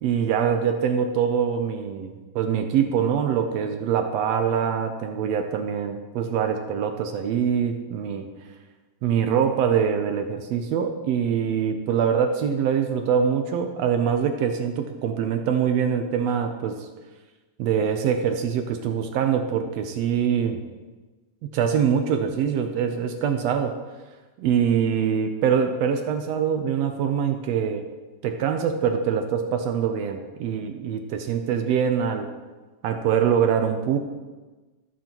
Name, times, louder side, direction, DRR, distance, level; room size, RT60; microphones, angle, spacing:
voice 1, 0.0-8.3 9.0-16.8 17.6-20.6 21.4-23.7 24.4-27.8 28.2-32.3 32.8-34.0, right 7 dB, 75° right, 6 dB, 1.5 m, -24 dB
14.5 x 7.4 x 3.0 m, 1.3 s
omnidirectional pair, 3.6 m